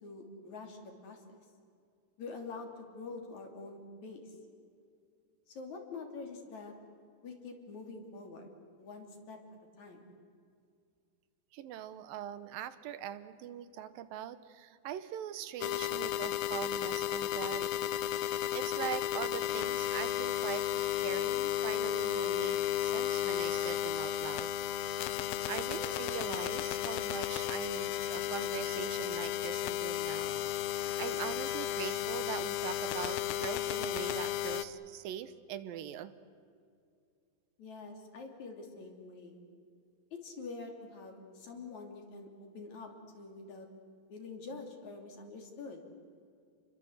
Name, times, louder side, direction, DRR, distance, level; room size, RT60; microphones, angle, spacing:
voice 1, 0.0-1.2 2.2-4.3 5.5-6.7 7.2-8.5 8.8-9.4 9.8-10.1 37.6-39.4 40.1-42.3 42.5-43.7 44.1-45.8, left 4 dB, 55° left, 3 dB, 4.2 m, -46 dB
voice 2, 11.5-18.0 18.5-24.5 25.5-30.5 31.0-36.1, right 11 dB, 75° right, 13 dB, 2.6 m, -42 dB
sound 1, 15.6-34.7, left 12 dB, 80° left, 2.6 m, -33 dB
29.5 x 22.5 x 8.0 m, 2.3 s
omnidirectional pair, 4.2 m